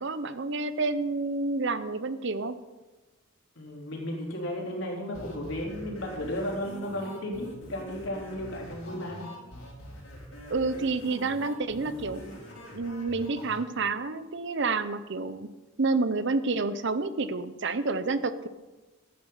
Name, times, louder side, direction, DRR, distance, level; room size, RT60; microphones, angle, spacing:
voice 1, 0.0-2.5 10.5-12.2 12.7-15.5 15.8-18.5, right 3 dB, 60° right, 13 dB, 0.7 m, -29 dB
voice 2, 3.6-9.2, left 1 dB, 65° left, -1 dB, 3.4 m, -34 dB
sound 1, 5.1-13.6, equal, 85° left, 4.5 m, -44 dB
13.0 x 9.1 x 5.6 m, 1.2 s
head